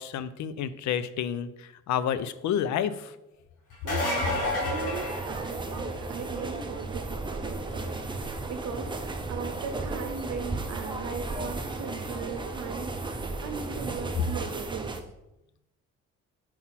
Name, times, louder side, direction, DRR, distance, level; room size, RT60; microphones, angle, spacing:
voice 1, 0.0-3.2, left 9 dB, 70° left, 14 dB, 0.5 m, -30 dB
sound 1, 3.7-5.9 11.5-11.6 13.4-13.5, left 2 dB, 85° left, 2.2 m, -30 dB
voice 2, 3.8-15.0, right 5 dB, 60° right, 5 dB, 0.8 m, -38 dB
sound 2, 4.2-15.0, right 3 dB, 15° right, 0.6 m, -35 dB
4.4 x 4.0 x 5.7 m, 0.91 s
cardioid pair, 90°, 30 cm